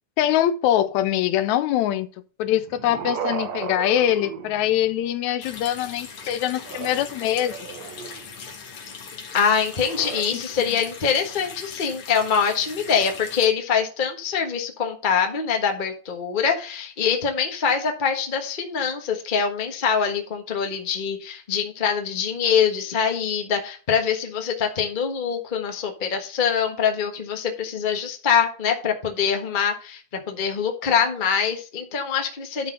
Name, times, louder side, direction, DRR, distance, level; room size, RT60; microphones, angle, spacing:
voice 1, 0.2-2.1 2.4-7.5 10.3-10.4, left 12 dB, 85° left, 2.0 m, -23 dB
sound 1, 2.5-5.1 6.6-8.3 9.7-10.2, right 7 dB, 70° right, 2.3 m, -35 dB
Water tap faucet, 5.4-13.5, left 5 dB, 55° left, 2.2 m, -39 dB
voice 2, 9.3-30.0 30.3-32.7, left 7 dB, 35° left, 0.7 m, -24 dB
11.5 x 4.2 x 5.3 m
omnidirectional pair, 3.3 m